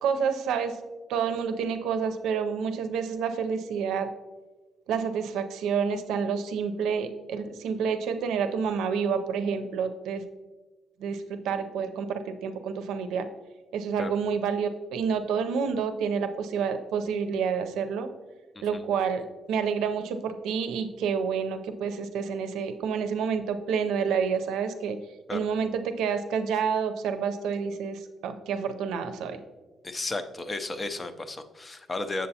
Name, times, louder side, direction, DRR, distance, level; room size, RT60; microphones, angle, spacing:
voice 1, 0.0-0.8 1.1-4.1 4.9-10.2 11.0-13.3 13.7-18.1 18.6-25.0 25.3-29.4, right 6 dB, 85° right, 8 dB, 0.5 m, -29 dB
voice 2, 29.8-32.3, left 2 dB, 30° left, 9 dB, 0.5 m, -33 dB
7.4 x 6.7 x 2.8 m, 1.2 s
cardioid pair, 90°, 0 cm